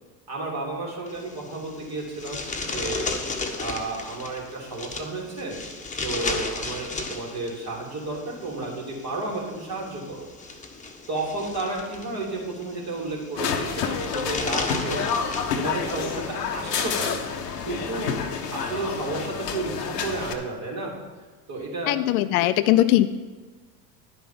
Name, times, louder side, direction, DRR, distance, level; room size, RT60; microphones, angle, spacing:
voice 1, 0.3-3.1 3.6-5.6 6.0-10.3 11.1-15.2 15.6-17.2 17.7-18.1 18.5-20.9 21.5-22.0, right 2 dB, 50° right, -3 dB, 3.7 m, -32 dB
sound 1, 1.1-19.3, left 3 dB, 15° left, 1.1 m, -36 dB
sound 2, 13.4-20.3, left 6 dB, 85° left, 1.0 m, -29 dB
voice 2, 21.9-23.1, left 15 dB, 65° left, 12 dB, 0.6 m, -20 dB
11.0 x 5.5 x 5.9 m, 1.3 s
hypercardioid pair, 75°, 47 cm